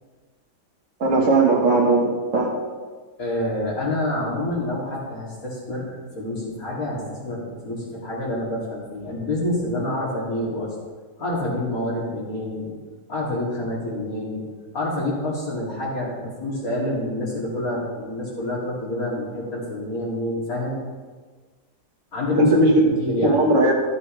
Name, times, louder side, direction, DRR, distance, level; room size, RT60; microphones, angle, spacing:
voice 1, 1.0-2.7 22.3-22.8 23.2-23.7, right 2 dB, 50° right, 0 dB, 1.7 m, -18 dB
voice 2, 3.2-10.7 11.2-12.8 13.1-14.4 14.7-20.8 22.1-23.4, left 1 dB, 55° left, -5 dB, 3.1 m, -27 dB
14.0 x 7.5 x 3.3 m, 1.4 s
omnidirectional pair, 1.8 m